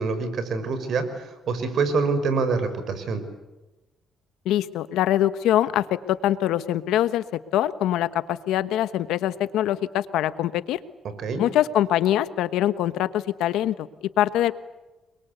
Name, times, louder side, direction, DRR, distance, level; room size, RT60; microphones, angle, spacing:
voice 1, 0.0-3.2 11.2-11.4, right 4 dB, 65° right, 10 dB, 5.6 m, -26 dB
voice 2, 4.4-7.2 7.5-10.8 11.4-14.5, left 12 dB, 90° left, 13 dB, 1.3 m, -23 dB
30.0 x 23.0 x 8.3 m, 1.1 s
cardioid pair, 90°, 0 cm